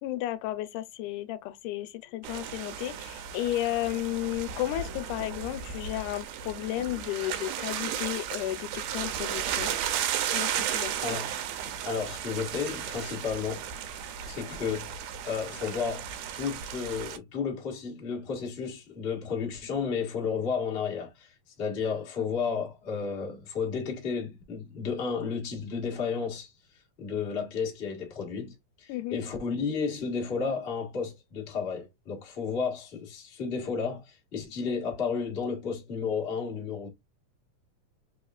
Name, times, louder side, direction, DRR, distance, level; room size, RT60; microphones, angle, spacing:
voice 1, 0.0-9.7 10.3-11.2 28.9-29.2 34.7-34.8, left 15 dB, 85° left, 2.0 m, -33 dB
sound 1, 2.2-17.2, right 9 dB, 90° right, 2.1 m, -34 dB
voice 2, 11.8-13.6 14.3-15.0 15.2-26.5 27.0-36.9, left 5 dB, 45° left, 0.7 m, -32 dB
4.4 x 3.5 x 2.3 m
omnidirectional pair, 3.6 m